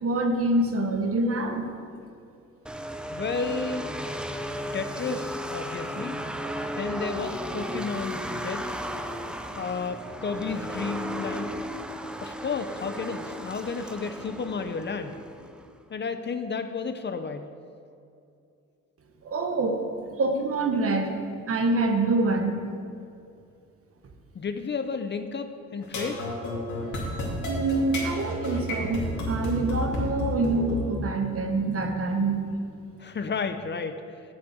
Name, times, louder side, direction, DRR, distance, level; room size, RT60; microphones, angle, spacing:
voice 1, 0.0-1.7 19.2-19.8 20.2-21.1 21.5-22.6 27.5-32.5, right 2 dB, 50° right, 4 dB, 1.4 m, -26 dB
sound 1, 2.7-15.7, equal, 5° right, 0.7 m, -35 dB
voice 2, 3.1-3.9 4.7-6.2 6.7-8.7 9.6-11.5 12.2-15.2 15.9-17.5 24.3-26.3 33.0-34.2, left 5 dB, 35° left, 9 dB, 0.7 m, -32 dB
sound 2, 25.8-30.8, left 1 dB, 70° left, 2.8 m, -30 dB
7.7 x 7.3 x 7.8 m, 2.5 s
cardioid pair, 90°, 30 cm